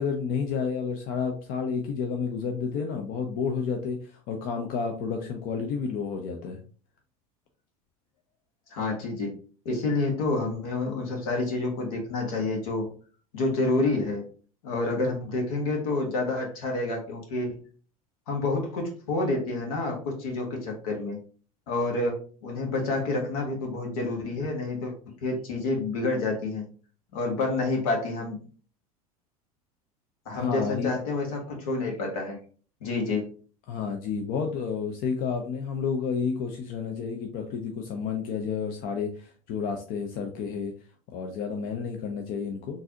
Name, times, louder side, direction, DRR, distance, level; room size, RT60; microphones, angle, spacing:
voice 1, 0.0-6.6 30.3-30.9 33.7-40.7 41.1-42.8, left 6 dB, 50° left, 4 dB, 0.6 m, -30 dB
voice 2, 8.7-9.3 9.6-12.8 13.3-14.2 14.6-17.6 18.3-21.2 21.7-22.2 22.4-24.9 25.2-26.6 27.1-28.4 30.2-32.4 32.8-33.2, left 2 dB, 75° left, 1 dB, 1.2 m, -28 dB
3.9 x 2.5 x 2.8 m, 0.41 s
hypercardioid pair, 85°, 19 cm